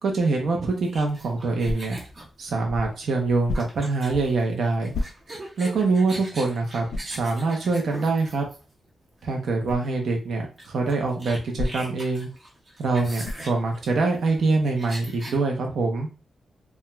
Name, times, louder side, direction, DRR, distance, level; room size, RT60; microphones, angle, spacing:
voice 1, 0.0-2.0 2.4-4.9 5.6-8.5 9.2-12.3 12.8-16.1, right 3 dB, 60° right, 1 dB, 0.6 m, -24 dB
sound 1, 0.8-8.9 9.7-9.9 10.2-10.3 10.6-15.4, right 1 dB, 30° right, 0.7 m, -41 dB
sound 2, 1.6-2.2 3.4-3.9 4.9-5.5 6.0-6.1 6.9-7.2 9.6-9.9 11.5-12.1 13.2-13.6, left 2 dB, 55° left, 0.3 m, -31 dB
2.3 x 2.2 x 3.0 m, 0.33 s
wide cardioid pair, 170°, 0 cm